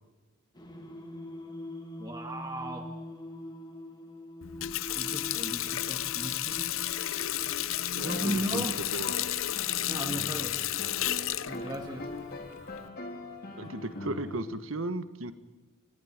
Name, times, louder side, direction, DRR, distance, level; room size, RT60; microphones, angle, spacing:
Singing, 0.6-14.6, left 1 dB, 20° left, 2.5 m, -46 dB
voice 1, 2.0-2.9 4.7-6.7 8.0-8.8 9.9-10.6 11.5-12.1 13.6-13.7, right 1 dB, 20° right, 3 dB, 1.8 m, -37 dB
Water tap faucet, 4.4-12.9, left 12 dB, 75° left, 0.8 m, -32 dB
voice 2, 7.9-8.6 8.9-9.4 13.6-15.3, right 2 dB, 75° right, 11 dB, 1.6 m, -36 dB
sound 1, 8.0-14.4, left 2 dB, 50° left, 3.5 m, -42 dB
29.5 x 15.5 x 8.8 m, 1.2 s
head